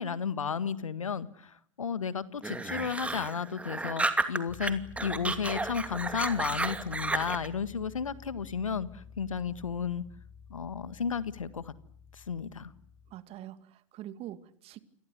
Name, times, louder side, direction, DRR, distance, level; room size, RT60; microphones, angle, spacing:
voice 1, 0.0-10.0 10.5-11.7 12.1-12.7, left 6 dB, 80° left, 16 dB, 1.6 m, -33 dB
sound 1, 2.4-4.7 5.0-7.5, right 2 dB, 10° right, 2.7 m, -32 dB
sound 2, 4.5-13.1, left 6 dB, 35° left, 6.8 m, -51 dB
voice 2, 13.1-14.8, right 12 dB, 35° right, 13 dB, 2.3 m, -44 dB
29.0 x 23.0 x 8.3 m, 0.63 s
figure-of-eight pair, 95°, 17 cm